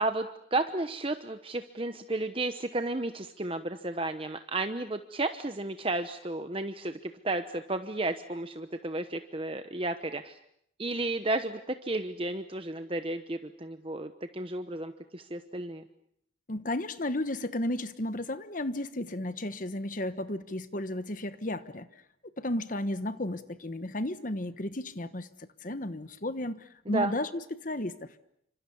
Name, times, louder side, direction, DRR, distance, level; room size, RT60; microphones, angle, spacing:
voice 1, 0.0-10.4 10.8-15.9 26.9-27.1, right 2 dB, 30° right, 8 dB, 1.0 m, -33 dB
voice 2, 16.5-21.9 22.4-28.2, left 1 dB, 40° left, 12 dB, 1.2 m, -33 dB
29.0 x 26.0 x 7.1 m, 0.73 s
head